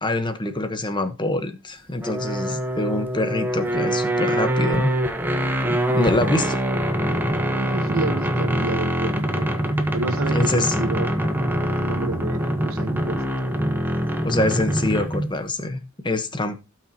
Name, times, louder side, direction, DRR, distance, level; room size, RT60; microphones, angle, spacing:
voice 1, 0.0-4.9 5.7-6.6 10.3-10.8 14.2-16.6, left 2 dB, 20° left, 1.2 m, -25 dB
sound 1, 2.0-15.4, right 1 dB, 10° right, 1.1 m, -24 dB
voice 2, 7.5-9.5 9.9-11.1 11.5-13.2, right 3 dB, 90° right, 1.2 m, -30 dB
17.0 x 6.1 x 2.9 m
head